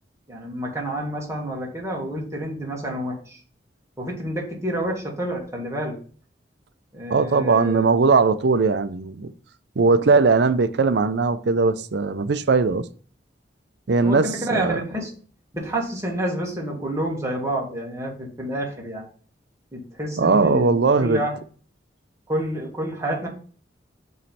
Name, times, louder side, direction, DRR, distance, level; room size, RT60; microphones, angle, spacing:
voice 1, 0.3-3.4 4.0-6.0 6.9-7.9 14.0-15.1 15.5-19.0 19.7-21.3 22.3-23.3, right 1 dB, 15° right, 1.8 m, -29 dB
voice 2, 7.1-9.3 9.8-12.8 13.9-14.8 20.2-21.2, right 4 dB, 65° right, 0.5 m, -19 dB
7.3 x 3.2 x 4.2 m
head